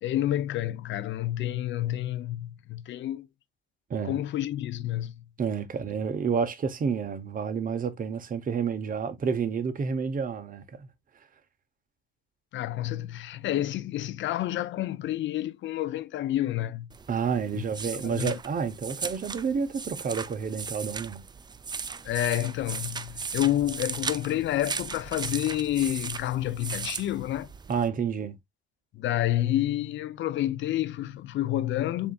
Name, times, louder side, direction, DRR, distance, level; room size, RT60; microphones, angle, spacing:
voice 1, 0.0-3.3 4.0-5.1 12.5-16.9 17.5-17.6 17.9-18.3 22.0-27.5 29.0-32.1, left 13 dB, 70° left, 0.5 m, -29 dB
voice 2, 3.9-4.2 5.4-10.9 17.1-21.2 27.7-28.4, right 6 dB, 45° right, 0.9 m, -29 dB
sound 1, 16.9-27.9, right 5 dB, 20° right, 0.3 m, -37 dB
7.0 x 2.7 x 2.3 m
cardioid pair, 90°, 20 cm